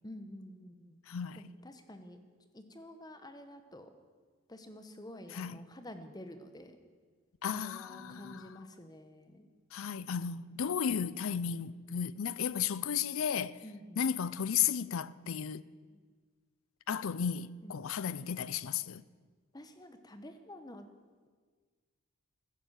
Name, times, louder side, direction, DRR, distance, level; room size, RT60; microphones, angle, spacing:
voice 1, 0.0-1.0 1.4-2.2 2.5-3.9 4.5-6.8 7.5-9.4 10.1-10.4 13.6-14.0 17.6-17.9 19.5-20.9, left 1 dB, 15° left, 1.0 m, -49 dB
voice 2, 1.1-1.5 5.3-5.6 7.4-8.7 9.7-13.6 14.0-15.6 16.9-19.0, left 8 dB, 65° left, 0.5 m, -34 dB
15.0 x 11.0 x 7.4 m
head